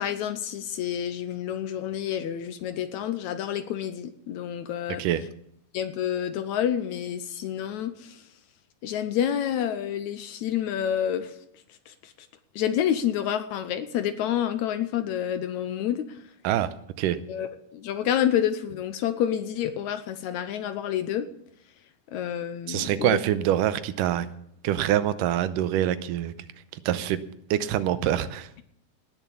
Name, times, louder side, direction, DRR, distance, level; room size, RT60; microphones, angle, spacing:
voice 1, 0.0-5.0 5.7-8.2 8.8-11.4 11.9-12.3 12.6-16.2 17.3-21.3 22.1-23.2, left 10 dB, 75° left, 10 dB, 1.9 m, -28 dB
voice 2, 22.7-24.3 24.6-26.3 26.9-27.2 27.5-28.5, right 12 dB, 85° right, 13 dB, 2.3 m, -25 dB
18.5 x 7.2 x 7.0 m, 0.73 s
omnidirectional pair, 3.8 m